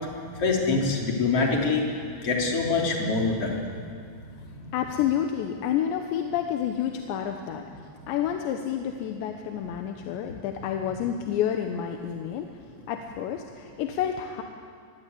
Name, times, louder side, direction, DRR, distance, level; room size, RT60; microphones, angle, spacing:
voice 1, 0.4-1.9 2.2-3.6, left 4 dB, 35° left, -1 dB, 4.0 m, -24 dB
voice 2, 4.7-14.4, left 9 dB, 85° left, 4 dB, 3.4 m, -29 dB
24.5 x 21.0 x 8.5 m, 2.2 s
omnidirectional pair, 5.0 m